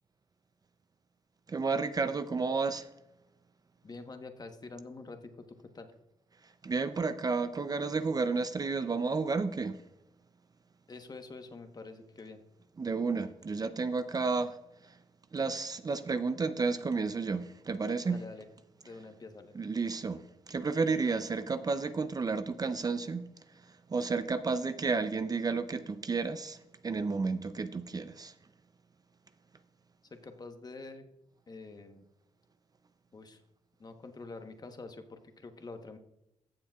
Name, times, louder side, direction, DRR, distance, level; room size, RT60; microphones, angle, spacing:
voice 1, 1.5-2.9 6.4-9.8 12.8-15.0 15.3-18.2 19.5-28.4, right 4 dB, 35° right, 0.5 m, -32 dB
voice 2, 3.8-5.3 5.7-5.9 10.9-12.4 18.1-18.4 18.8-19.5 30.1-31.0 31.5-32.0 33.1-33.4 33.8-36.0, left 3 dB, 35° left, 1.1 m, -46 dB
15.0 x 7.0 x 2.4 m
cardioid pair, 80°, 12 cm